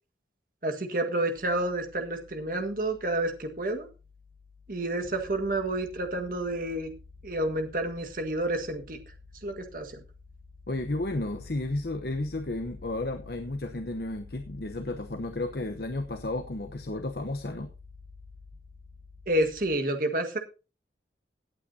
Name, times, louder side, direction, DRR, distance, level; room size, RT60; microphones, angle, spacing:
voice 1, 0.6-3.9 4.7-6.9 7.2-9.0 9.4-10.0 19.3-20.4, right 1 dB, 50° right, 5 dB, 1.7 m, -29 dB
sound 1, 1.3-19.7, left 4 dB, 80° right, 5.8 m, -50 dB
voice 2, 10.7-17.7, left 2 dB, 60° left, 6 dB, 0.9 m, -33 dB
17.5 x 8.7 x 2.8 m, 0.31 s
head